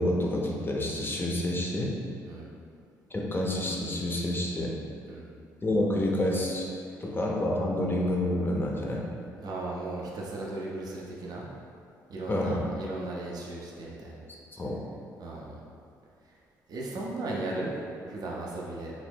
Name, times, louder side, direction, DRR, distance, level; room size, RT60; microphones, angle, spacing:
voice 1, 0.0-1.9 3.1-4.7 5.6-6.7 7.0-9.0 12.3-12.7 14.5-14.8, left 1 dB, 25° left, -2 dB, 0.5 m, -28 dB
voice 2, 9.4-11.5 12.1-14.2 15.2-15.6 16.7-17.7 18.0-18.9, right 2 dB, 45° right, -3 dB, 0.4 m, -36 dB
2.8 x 2.0 x 3.3 m, 2.3 s
figure-of-eight pair, 45°, 9 cm